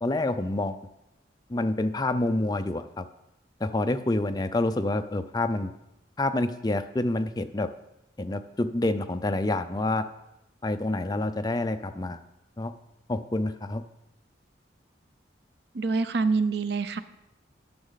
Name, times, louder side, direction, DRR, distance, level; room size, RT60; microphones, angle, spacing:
voice 1, 0.0-0.8 1.5-3.0 3.6-5.7 6.2-7.7 8.2-10.1 10.6-12.2 12.6-12.7 13.1-13.8, left 2 dB, 20° left, 8 dB, 0.4 m, -27 dB
voice 2, 15.7-17.0, right 4 dB, 60° right, 12 dB, 0.5 m, -26 dB
11.0 x 6.4 x 4.0 m, 0.88 s
head